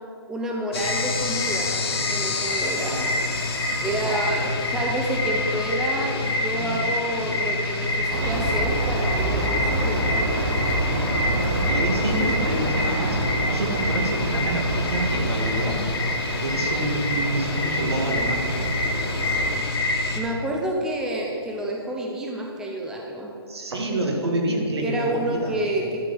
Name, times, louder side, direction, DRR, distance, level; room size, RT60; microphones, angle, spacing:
voice 1, 0.3-3.1 3.8-4.4 4.7-10.3 20.2-23.3 24.8-26.0, right 1 dB, 5° right, -1 dB, 0.6 m, -29 dB
sound 1, 0.7-20.2, left 2 dB, 65° left, 2.1 m, -26 dB
voice 2, 4.0-5.1 6.5-6.9 11.5-15.8 16.4-18.4 23.5-25.5, right 1 dB, 70° right, 1 dB, 2.5 m, -28 dB
sound 2, 8.1-19.6, right 2 dB, 50° right, 1.7 m, -28 dB
11.5 x 5.9 x 7.8 m, 2.4 s
hypercardioid pair, 155°, 14 cm